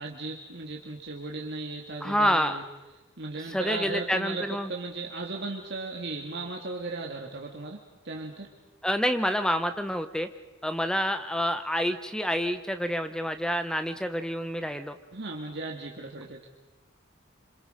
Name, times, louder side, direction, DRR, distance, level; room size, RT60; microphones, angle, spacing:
voice 1, 0.0-2.6 3.2-4.4 4.7-7.8 8.0-8.5 15.1-16.4, right 3 dB, 55° right, 0 dB, 2.1 m, -36 dB
voice 2, 2.0-2.6 3.5-4.7 8.8-10.3 10.6-15.0, equal, 5° left, 9 dB, 0.8 m, -28 dB
27.5 x 26.5 x 5.1 m, 1.1 s
head